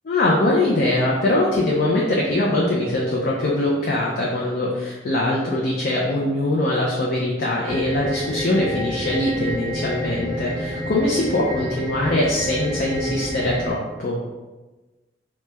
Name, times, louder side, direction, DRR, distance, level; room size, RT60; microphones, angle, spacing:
voice 1, 0.1-14.2, left 1 dB, 55° left, -3 dB, 0.4 m, -22 dB
sound 1, 7.6-13.7, equal, 20° right, 0.4 m, -29 dB
3.0 x 2.2 x 3.2 m, 1.2 s
head